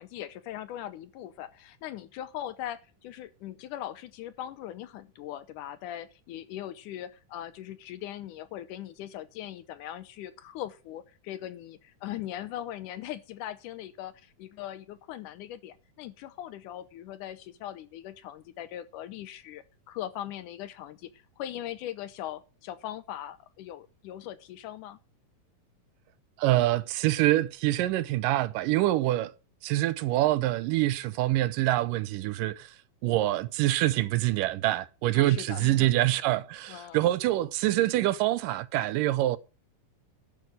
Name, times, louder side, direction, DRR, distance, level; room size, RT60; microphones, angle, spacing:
voice 1, 0.0-25.0 35.1-35.9 36.7-37.1, left 12 dB, 75° left, 2.2 m, -40 dB
voice 2, 26.4-29.3 29.6-32.7 33.0-39.4, right 15 dB, 85° right, 2.3 m, -25 dB
11.5 x 5.9 x 6.3 m
omnidirectional pair, 3.8 m